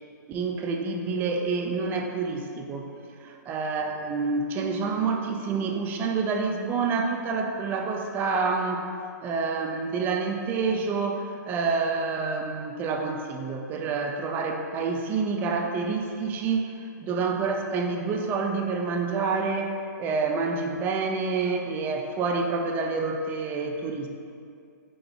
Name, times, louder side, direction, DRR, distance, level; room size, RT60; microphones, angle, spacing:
voice 1, 0.3-2.9 3.2-8.8 9.2-16.7 17.0-24.1, right 4 dB, 20° right, 3 dB, 0.3 m, -28 dB
3.8 x 3.4 x 3.4 m, 2.3 s
hypercardioid pair, 140°, 10 cm